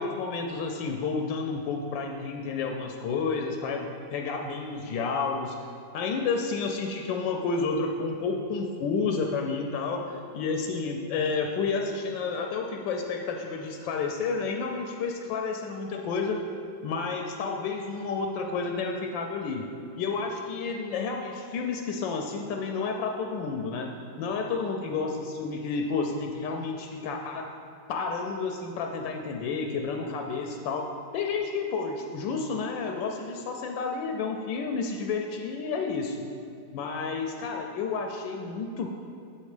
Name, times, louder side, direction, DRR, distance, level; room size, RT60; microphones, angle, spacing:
voice 1, 0.0-5.6 5.9-10.0 10.3-16.4 16.8-19.7 20.0-23.9 24.2-27.5 27.9-30.9 31.1-36.1 36.7-38.9, left 4 dB, 80° left, 3 dB, 1.3 m, -30 dB
7.1 x 4.3 x 4.9 m, 2.5 s
omnidirectional pair, 2.0 m